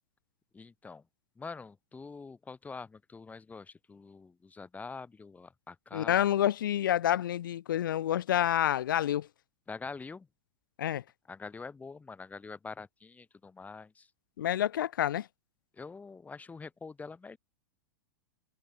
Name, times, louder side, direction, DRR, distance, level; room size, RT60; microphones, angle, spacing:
voice 1, 0.5-1.0 1.4-6.3 9.7-10.3 11.3-14.1 15.7-17.4, left 4 dB, 15° left, 5.6 m, -45 dB
voice 2, 5.9-9.3 10.8-11.0 14.4-15.3, left 11 dB, 75° left, 5.2 m, -28 dB
hypercardioid pair, 110°, 11 cm